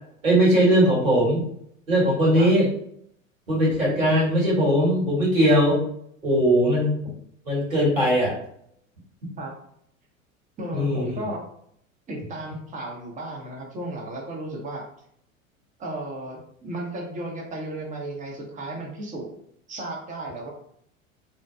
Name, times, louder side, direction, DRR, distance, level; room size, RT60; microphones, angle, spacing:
voice 1, 0.2-1.4 1.9-2.7 3.5-5.8 6.2-6.9 7.4-8.3 10.7-11.3, equal, 80° right, -6 dB, 1.5 m, -20 dB
voice 2, 10.6-11.4 12.1-14.8 15.8-19.3 19.7-20.5, right 1 dB, 20° right, -1 dB, 0.7 m, -34 dB
2.7 x 2.2 x 2.2 m, 0.68 s
figure-of-eight pair, 85°, 40 cm